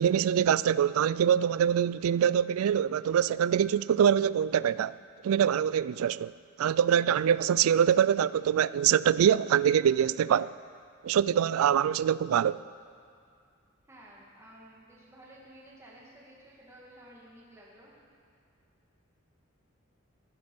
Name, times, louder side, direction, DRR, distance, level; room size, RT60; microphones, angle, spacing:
voice 1, 0.0-5.0 5.2-6.3 6.6-10.5 11.0-12.6, right 9 dB, 80° right, 0.3 m, -24 dB
voice 2, 13.9-17.9, right 1 dB, 15° right, 1.8 m, -53 dB
14.0 x 13.0 x 5.3 m
head